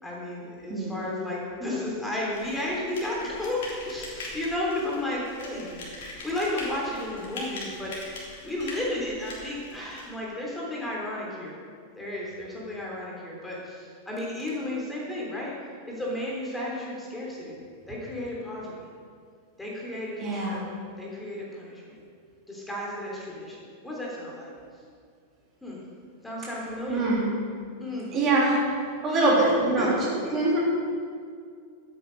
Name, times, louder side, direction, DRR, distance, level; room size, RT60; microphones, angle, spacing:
voice 1, 0.0-5.8 6.0-7.9 8.4-11.5 11.9-15.5 15.9-17.6 17.9-18.8 19.6-20.7 21.0-22.0 22.5-23.6 23.8-24.5 25.6-25.8 26.2-27.0 27.8-28.1 29.1-29.3 29.8-30.4, left 1 dB, 5° left, -4 dB, 3.4 m, -33 dB
sound 1, 2.3-10.1, left 2 dB, 55° left, 3.3 m, -41 dB
voice 2, 20.2-20.6 26.9-27.3 28.1-28.6 29.0-29.9 30.3-30.6, right 2 dB, 30° right, -5 dB, 3.1 m, -23 dB
12.5 x 8.8 x 5.4 m, 2.2 s
figure-of-eight pair, 90°, 0 cm